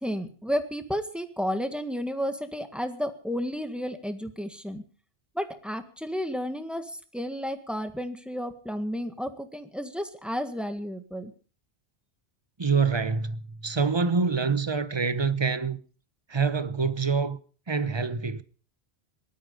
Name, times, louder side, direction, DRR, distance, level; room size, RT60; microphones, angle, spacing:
voice 1, 0.0-4.8 5.3-11.3, equal, ahead, 1.7 m, -32 dB
voice 2, 12.6-15.8 16.3-17.4 17.7-18.4, right 5 dB, 25° right, 0.9 m, -26 dB
19.5 x 13.0 x 5.4 m
omnidirectional pair, 1.1 m